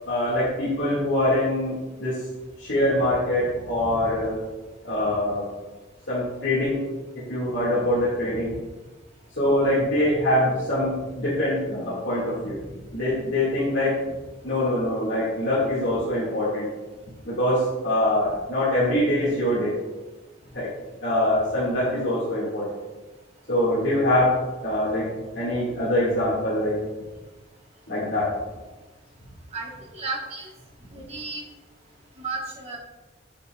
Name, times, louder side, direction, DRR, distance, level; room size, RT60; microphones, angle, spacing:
voice 1, 0.1-2.2 2.6-4.4 4.8-5.4 6.1-6.8 7.3-8.6 9.4-12.7 12.9-13.9 14.4-16.7 17.2-19.7 20.5-20.7 21.0-22.7 23.5-24.3 24.6-25.1 25.3-26.7 27.9-28.3, left 1 dB, 65° left, -9 dB, 2.0 m, -24 dB
voice 2, 29.5-30.5 30.9-31.4 32.2-32.8, right 3 dB, 30° right, -2 dB, 1.2 m, -33 dB
7.9 x 5.8 x 2.3 m, 1.2 s
head